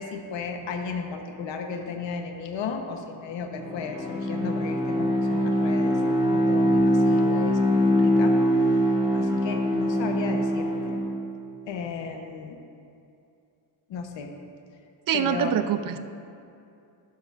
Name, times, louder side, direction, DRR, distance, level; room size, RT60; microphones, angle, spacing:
voice 1, 0.0-8.4 9.1-11.0 11.7-12.6 13.9-14.3 15.1-15.5, left 5 dB, 75° left, 4 dB, 1.0 m, -34 dB
Bowed string instrument, 3.5-11.3, equal, 10° right, 1.6 m, -23 dB
voice 2, 15.1-16.0, right 9 dB, 50° right, 10 dB, 0.5 m, -25 dB
12.5 x 12.0 x 2.5 m, 2.6 s
cardioid pair, 155°, 45 cm